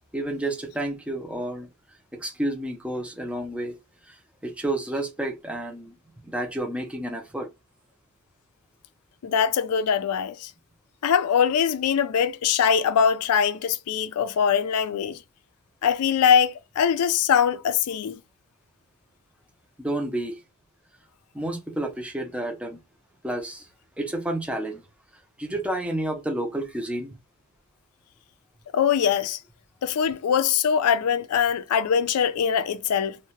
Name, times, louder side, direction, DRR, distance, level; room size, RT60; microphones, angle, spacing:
voice 1, 0.1-1.7 2.2-3.7 4.1-4.2 4.4-5.9 6.2-7.5 19.8-20.4 21.3-22.8 23.2-23.7 24.0-24.8 25.4-27.1, right 1 dB, 5° right, 0.5 m, -30 dB
voice 2, 9.2-10.5 11.0-15.2 15.8-18.2 28.7-29.4 29.8-33.2, left 7 dB, 80° left, 0.4 m, -22 dB
2.7 x 2.1 x 2.8 m
head